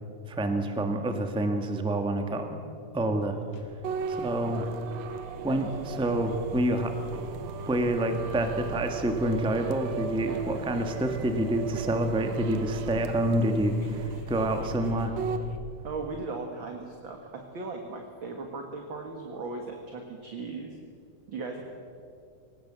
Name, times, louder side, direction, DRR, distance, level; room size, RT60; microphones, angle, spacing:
voice 1, 0.3-2.6 2.9-3.4 4.1-4.6 5.4-6.9 7.7-15.1, right 1 dB, 5° right, 5 dB, 0.4 m, -27 dB
sound 1, 3.3-15.6, left 4 dB, 55° left, 2.4 m, -42 dB
sound 2, 3.8-15.5, right 6 dB, 70° right, 2.0 m, -38 dB
voice 2, 15.8-20.8 21.3-21.6, right 3 dB, 45° right, 3 dB, 2.1 m, -37 dB
23.0 x 19.0 x 7.6 m, 2.5 s
omnidirectional pair, 3.6 m